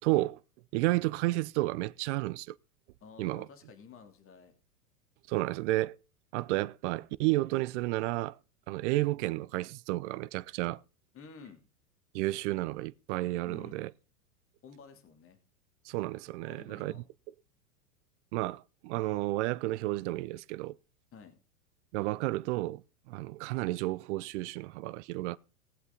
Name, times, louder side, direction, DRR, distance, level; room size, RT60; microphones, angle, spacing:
voice 1, 0.0-0.4 0.7-2.5 3.2-3.5 5.3-6.0 6.3-8.4 8.7-10.8 12.1-13.9 15.8-16.9 18.3-20.7 21.9-22.8 23.1-25.4, right 19 dB, 50° right, 0.7 m, -31 dB
voice 2, 3.0-4.5 11.1-11.6 13.4-13.8 14.6-15.4 16.5-17.1 21.1-21.4, left 5 dB, 30° left, 2.8 m, -51 dB
18.5 x 8.1 x 3.8 m
hypercardioid pair, 105°, 44 cm